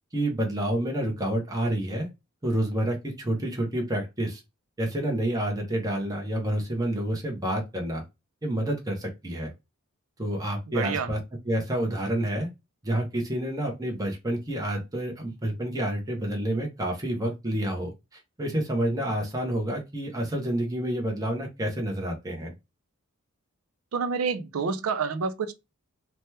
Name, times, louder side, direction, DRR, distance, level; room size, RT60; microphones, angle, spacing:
voice 1, 0.1-2.1 2.4-4.4 4.8-8.0 8.4-9.5 10.2-11.2 11.4-12.5 12.8-22.5, right 1 dB, 15° right, 0.8 m, -29 dB
voice 2, 10.7-11.1 23.9-25.5, right 5 dB, 85° right, 0.5 m, -28 dB
3.0 x 2.2 x 3.1 m
head